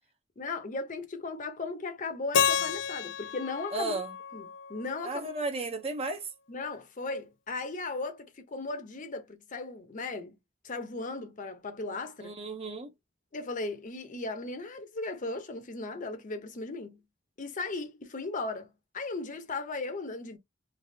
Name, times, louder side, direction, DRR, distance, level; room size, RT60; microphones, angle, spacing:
voice 1, 0.4-4.0 4.3-5.3 6.5-10.3 10.6-12.4 13.3-17.0 17.4-20.4, left 3 dB, 40° left, 0.7 m, -37 dB
Keyboard (musical), 2.3-5.3, left 7 dB, 65° left, 0.4 m, -31 dB
voice 2, 3.7-4.1 5.0-6.3 12.2-12.9, right 3 dB, 30° right, 0.6 m, -34 dB
3.3 x 2.4 x 2.7 m
head